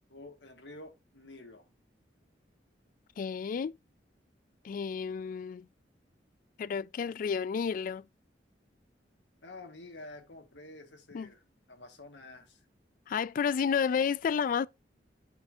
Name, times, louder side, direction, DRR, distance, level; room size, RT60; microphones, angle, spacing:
voice 1, 0.1-1.6 9.4-11.4 11.7-12.6, left 2 dB, 90° left, 1.8 m, -49 dB
voice 2, 3.2-3.8 4.6-5.7 6.6-8.0 11.1-11.3 13.1-14.7, left 6 dB, 50° left, 0.3 m, -31 dB
8.1 x 5.7 x 2.7 m
head